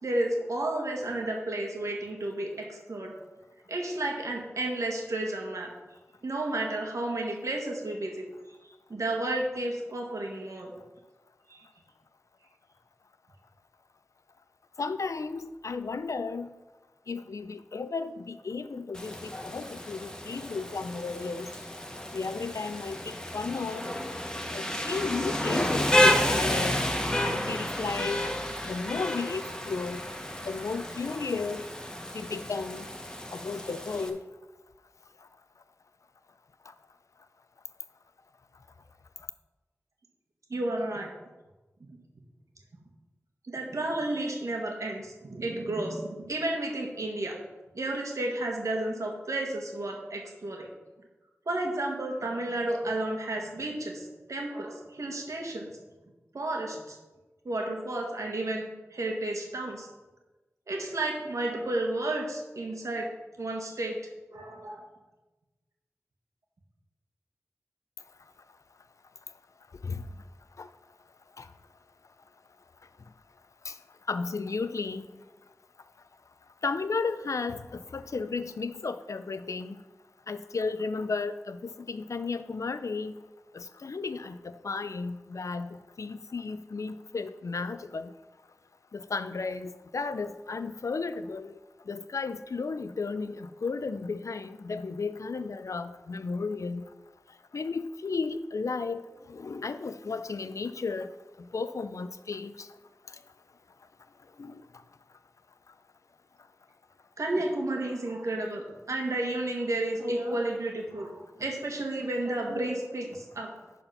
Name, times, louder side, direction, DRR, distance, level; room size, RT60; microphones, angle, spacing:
voice 1, 0.0-3.1 3.7-5.7 6.2-8.2 8.9-10.7 11.5-11.6 40.5-41.1 43.5-47.4 47.7-50.7 51.4-55.7 56.3-57.0 57.4-59.9 60.7-63.1 63.4-64.0 64.3-64.9 107.2-113.5, right 2 dB, 75° right, 0 dB, 1.7 m, -32 dB
voice 2, 14.8-16.5 17.1-21.5 22.1-23.9 24.5-26.8 27.2-28.2 28.7-30.0 30.5-31.7 32.1-32.9 33.3-34.2 69.8-70.0 70.6-70.7 71.4-71.5 73.6-73.8 74.1-75.1 76.6-79.8 80.3-83.2 83.5-88.1 88.9-91.6 91.9-96.8 97.5-101.1 101.4-102.7 104.4-104.6, left 4 dB, 75° left, 11 dB, 0.5 m, -34 dB
Rain, 18.9-34.1, left 1 dB, 15° left, 1.1 m, -30 dB
11.0 x 4.3 x 5.8 m, 1.2 s
wide cardioid pair, 70°, 5 cm